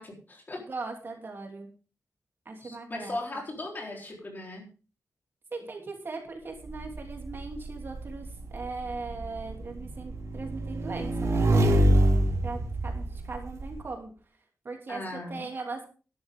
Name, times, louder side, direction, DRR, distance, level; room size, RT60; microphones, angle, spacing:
voice 1, 0.0-0.6 2.6-4.6 14.9-15.5, left 2 dB, 35° left, 0 dB, 3.9 m, -38 dB
voice 2, 0.7-1.7 2.4-3.2 5.5-11.8 12.4-14.1 14.6-15.9, right 3 dB, 45° right, 2 dB, 3.0 m, -39 dB
Motorcycle / Engine, 6.6-13.7, right 1 dB, 70° right, 3.0 m, -26 dB
13.0 x 12.0 x 3.7 m, 0.37 s
wide cardioid pair, 180°, 5 cm